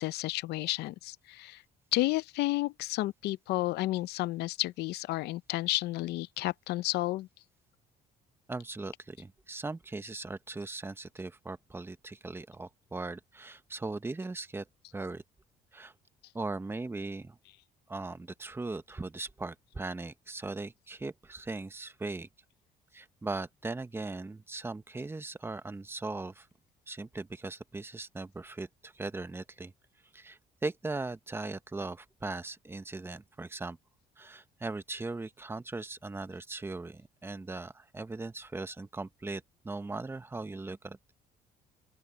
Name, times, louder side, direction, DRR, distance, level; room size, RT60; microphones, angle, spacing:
voice 1, 0.0-1.6 1.9-7.3, left 18 dB, 80° left, 0.6 m, -31 dB
voice 2, 8.5-14.7 14.9-15.2 15.7-15.9 16.3-17.4 17.9-22.3 22.9-26.5 26.9-29.7 30.1-33.8 34.2-41.0, right 3 dB, 15° right, 1.0 m, -39 dB
open air
cardioid pair, 110°, 17 cm